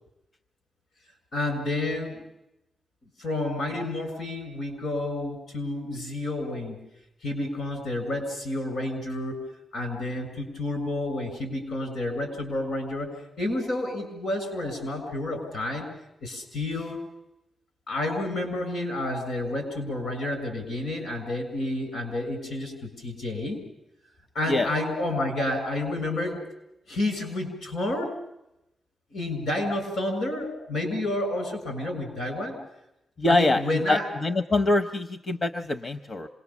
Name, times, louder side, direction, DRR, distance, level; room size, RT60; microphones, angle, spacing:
voice 1, 1.3-2.2 3.2-6.8 7.2-9.4 9.7-13.1 13.4-15.9 16.2-17.0 17.9-23.6 24.3-26.4 26.9-28.1 29.1-32.6 33.3-34.1, left 1 dB, 80° left, 5 dB, 7.1 m, -30 dB
voice 2, 33.2-36.3, left 2 dB, 45° left, 8 dB, 0.8 m, -24 dB
26.5 x 20.0 x 7.2 m, 0.88 s
wide cardioid pair, 115°, 0 cm